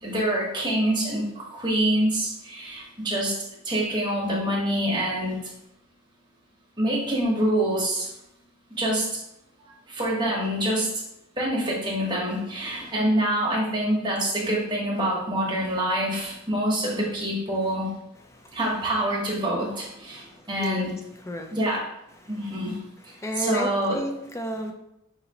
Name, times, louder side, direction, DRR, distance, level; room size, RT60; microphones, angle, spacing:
voice 1, 0.0-3.3 3.6-5.4 6.8-8.1 8.8-9.1 9.9-10.9 11.4-17.9 18.5-20.9 21.5-21.8 22.3-22.8 23.0-24.0, right 1 dB, 20° right, -4 dB, 1.0 m, -26 dB
voice 2, 20.1-20.9 21.3-21.6 23.2-24.7, right 1 dB, 15° left, 4 dB, 0.3 m, -32 dB
5.0 x 2.8 x 2.8 m, 0.84 s
head